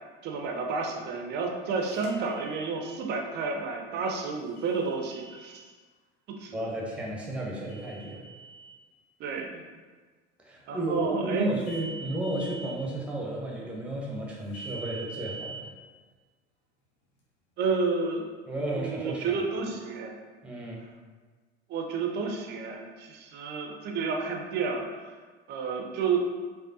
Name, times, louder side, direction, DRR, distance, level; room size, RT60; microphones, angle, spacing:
voice 1, 0.2-5.6 6.3-6.6 9.2-9.6 10.7-11.5 17.6-18.2 18.7-20.2 21.7-25.1 25.5-26.3, right 4 dB, 30° right, 2 dB, 0.5 m, -30 dB
sound 1, 1.9-3.0 4.6-5.7 7.7-8.8 11.6-12.8 14.5-15.6, right 3 dB, 55° left, 1.0 m, -44 dB
voice 2, 6.5-8.2 10.4-15.7 18.5-19.4 20.4-20.8, right 1 dB, 5° right, -4 dB, 0.8 m, -33 dB
5.0 x 2.1 x 2.7 m, 1.4 s
figure-of-eight pair, 75°, 34 cm